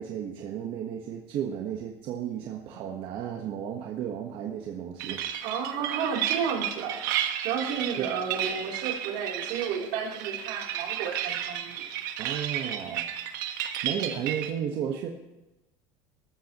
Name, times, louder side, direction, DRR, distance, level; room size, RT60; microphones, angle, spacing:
voice 1, 0.0-5.3 8.0-8.1 12.2-13.1 13.8-15.1, right 9 dB, 55° right, 2 dB, 1.3 m, -33 dB
sound 1, 5.0-14.5, right 10 dB, 90° right, 1.4 m, -32 dB
voice 2, 5.4-7.0 7.4-11.9, right 7 dB, 75° right, -1 dB, 3.4 m, -32 dB
19.0 x 14.5 x 3.0 m, 1.0 s
cardioid pair, 130°, 10 cm